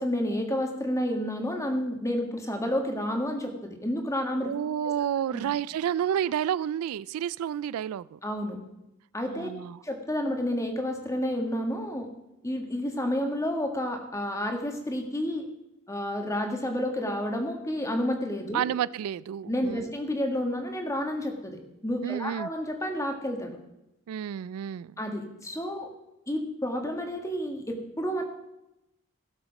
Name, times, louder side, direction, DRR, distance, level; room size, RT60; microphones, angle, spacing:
voice 1, 0.0-4.5 5.3-5.5 8.2-8.6 9.1-9.5 9.8-12.1 12.4-15.5 15.9-18.7 19.5-23.6 25.0-25.9 26.3-28.2, left 1 dB, 15° left, 4 dB, 1.6 m, -30 dB
voice 2, 4.4-8.2 9.3-9.8 18.5-19.9 22.0-22.5 24.1-25.0, right 9 dB, 85° right, 18 dB, 0.3 m, -30 dB
16.5 x 7.1 x 5.3 m, 0.90 s
head